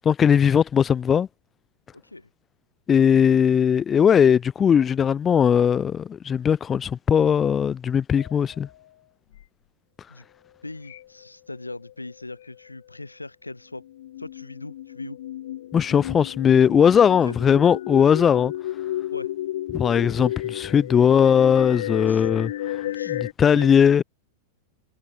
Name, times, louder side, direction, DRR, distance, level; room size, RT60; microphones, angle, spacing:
voice 1, 0.1-1.3 2.9-8.7 15.7-18.5 19.7-24.0, left 8 dB, 20° left, 0.3 m, -19 dB
voice 2, 1.9-2.3 10.1-10.3 10.6-13.9 14.2-15.2 17.2-17.4 19.1-19.3 22.1-22.3 22.9-23.2 23.5-23.7, left 2 dB, 85° left, 3.5 m, -39 dB
sound 1, 8.2-8.7 9.3-9.4 10.8-11.3 11.5-12.5 13.8-23.3, left 13 dB, 60° left, 3.6 m, -33 dB
figure-of-eight pair, 90°, 0 cm